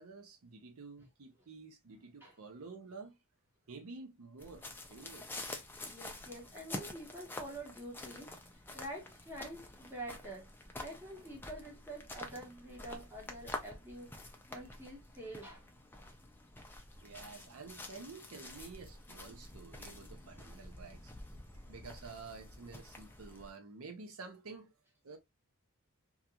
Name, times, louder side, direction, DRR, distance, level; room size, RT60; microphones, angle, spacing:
voice 1, 0.0-3.2 3.7-5.3 17.0-21.1 21.7-24.7 25.0-25.2, right 4 dB, 75° right, 0.6 m, -50 dB
sound 1, 4.4-23.5, left 2 dB, 10° left, 0.4 m, -48 dB
voice 2, 5.9-10.5 10.8-14.1 14.5-15.6, right 1 dB, 10° right, 1.0 m, -47 dB
2.4 x 2.3 x 2.7 m
head